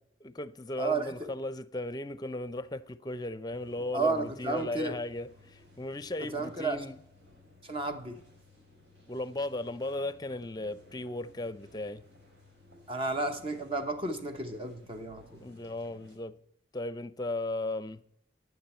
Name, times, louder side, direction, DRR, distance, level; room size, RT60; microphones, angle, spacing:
voice 1, 0.2-7.0 9.1-12.0 15.4-16.4 16.7-18.0, left 2 dB, 20° left, 0.6 m, -36 dB
voice 2, 0.8-1.3 3.9-5.0 6.2-6.8 7.6-8.2 12.9-15.4, right 3 dB, 30° right, 0.9 m, -32 dB
sound 1, 3.5-16.1, left 2 dB, 80° right, 5.6 m, -58 dB
15.0 x 9.6 x 4.4 m
head